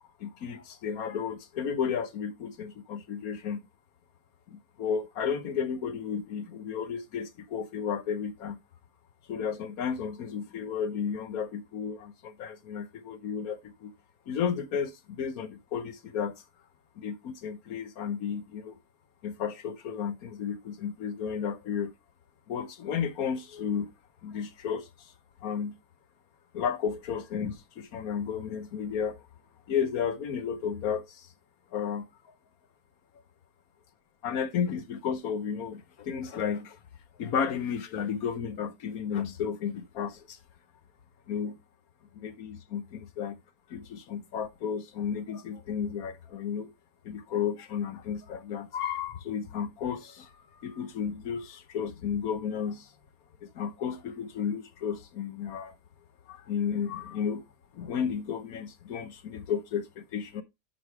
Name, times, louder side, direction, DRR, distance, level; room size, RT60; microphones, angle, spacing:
voice 1, 0.2-3.7 4.5-8.6 9.3-13.9 14.3-16.4 17.0-18.8 19.2-21.9 22.5-23.9 24.2-25.1 25.4-25.8 26.5-29.3 29.7-31.3 31.7-32.1 34.2-36.8 37.2-40.4 41.3-41.6 42.1-43.4 43.7-46.7 47.0-52.9 53.4-55.7 56.3-57.4 57.7-60.4, left 7 dB, 70° left, 1.4 m, -33 dB
10.5 x 5.0 x 3.4 m
omnidirectional pair, 1.7 m